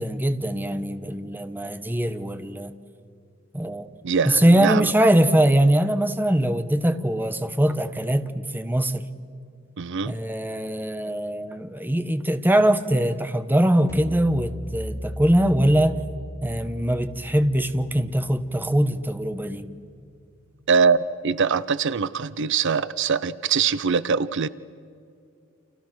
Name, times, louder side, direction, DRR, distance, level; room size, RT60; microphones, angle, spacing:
voice 1, 0.0-2.7 3.5-3.9 4.3-9.0 10.1-16.0 16.4-19.7, right 1 dB, 10° right, 1.1 m, -22 dB
voice 2, 4.0-4.9 9.8-10.1 20.7-24.5, right 5 dB, 60° right, 0.6 m, -23 dB
sound 1, 13.9-19.2, equal, 15° left, 1.2 m, -37 dB
30.0 x 28.5 x 6.1 m
head